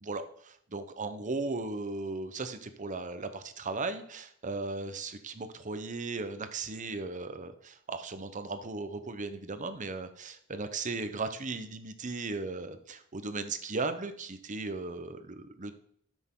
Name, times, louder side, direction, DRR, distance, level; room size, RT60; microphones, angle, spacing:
voice 1, 0.0-15.7, right 3 dB, 35° right, 10 dB, 0.8 m, -37 dB
12.5 x 6.3 x 3.8 m, 0.65 s
head